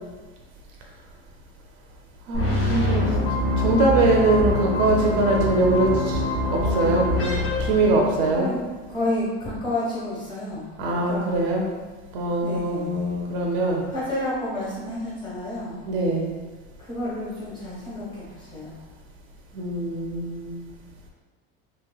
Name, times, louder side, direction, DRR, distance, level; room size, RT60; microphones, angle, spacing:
sound 1, 2.3-8.5, left 1 dB, 70° left, 1.3 m, -24 dB
voice 1, 2.3-3.1 3.6-7.3 7.6-8.5 10.8-11.7 12.1-13.8 15.9-16.4 19.5-20.6, right 2 dB, 60° right, 0 dB, 0.5 m, -23 dB
voice 2, 8.9-11.4 12.4-13.1 13.8-15.8 16.8-18.7, left 1 dB, 15° left, -8 dB, 1.4 m, -30 dB
2.9 x 2.9 x 2.3 m, 1.3 s
supercardioid pair, 135°, 29 cm